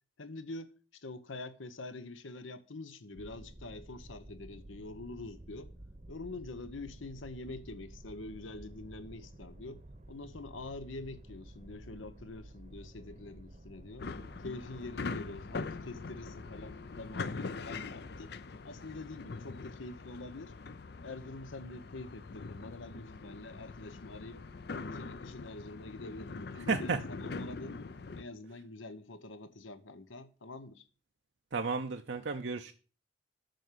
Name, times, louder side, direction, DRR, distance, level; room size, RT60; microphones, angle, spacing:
voice 1, 0.2-5.7 6.1-9.8 10.1-14.1 14.4-18.3 18.6-20.5 21.0-24.4 24.8-27.8 28.2-30.9, left 2 dB, 85° left, 1.0 m, -45 dB
sound 1, 3.1-18.3, right 1 dB, 35° right, 0.9 m, -52 dB
sound 2, 14.0-28.2, left 4 dB, 55° left, 0.5 m, -43 dB
voice 2, 26.7-27.0 31.5-32.7, right 4 dB, 65° right, 0.6 m, -33 dB
7.8 x 6.1 x 6.7 m
head